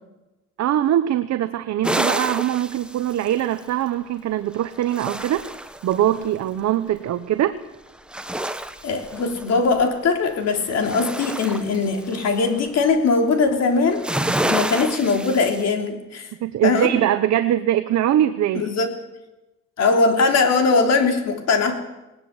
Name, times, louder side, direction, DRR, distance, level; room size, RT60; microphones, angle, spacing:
voice 1, 0.6-5.5 5.8-7.6 16.4-18.7, right 11 dB, 60° right, 9 dB, 1.0 m, -22 dB
sound 1, 1.8-3.8 4.6-6.3 8.0-9.8 10.3-12.7 13.8-15.6, right 1 dB, 5° right, 0.9 m, -29 dB
voice 2, 8.8-14.0 14.4-16.3 16.6-16.9 18.5-18.9 19.8-21.8, left 4 dB, 60° left, 4 dB, 3.4 m, -20 dB
19.5 x 19.0 x 7.9 m, 1.0 s
cardioid pair, 170°, 30 cm